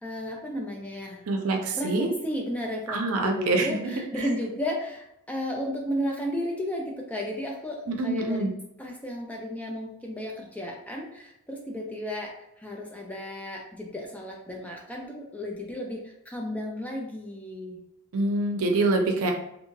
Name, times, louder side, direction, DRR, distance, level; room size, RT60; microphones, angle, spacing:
voice 1, 0.0-1.2 1.7-8.5 8.8-17.8, left 1 dB, 5° left, -1 dB, 0.3 m, -34 dB
voice 2, 1.3-2.1 2.9-3.9 4.2-4.3 7.9-8.5 18.1-19.3, right 2 dB, 75° right, 3 dB, 0.5 m, -25 dB
2.5 x 2.3 x 3.1 m, 0.80 s
head